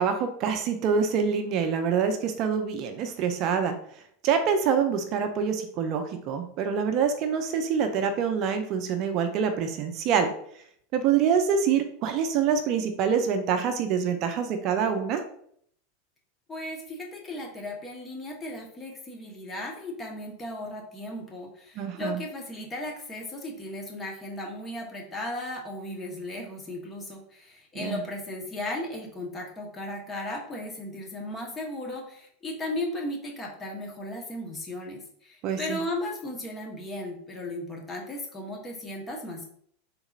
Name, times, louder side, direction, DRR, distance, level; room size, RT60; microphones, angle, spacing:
voice 1, 0.0-3.7 4.2-10.3 10.9-15.2 21.8-22.2 27.7-28.0 35.4-35.8, right 7 dB, 50° right, 7 dB, 0.4 m, -26 dB
voice 2, 16.5-39.5, left 1 dB, 20° left, 0 dB, 1.0 m, -36 dB
3.7 x 2.8 x 2.4 m, 0.64 s
hypercardioid pair, 95°, 0 cm